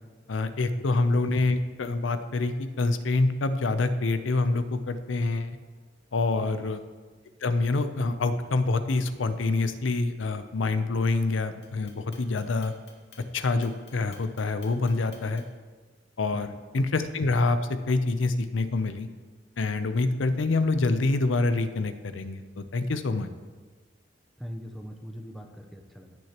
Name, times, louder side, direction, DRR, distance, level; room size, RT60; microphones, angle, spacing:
voice 1, 0.3-5.6 6.1-6.8 7.4-12.7 13.3-15.4 16.2-17.6 17.9-19.1 19.6-23.3, left 3 dB, 90° left, 11 dB, 0.6 m, -26 dB
voice 2, 6.4-6.7 16.3-16.6 24.4-26.2, equal, ahead, 3 dB, 0.7 m, -41 dB
Clock, 11.6-15.6, left 6 dB, 60° left, 2.0 m, -53 dB
15.5 x 6.2 x 2.9 m, 1.4 s
head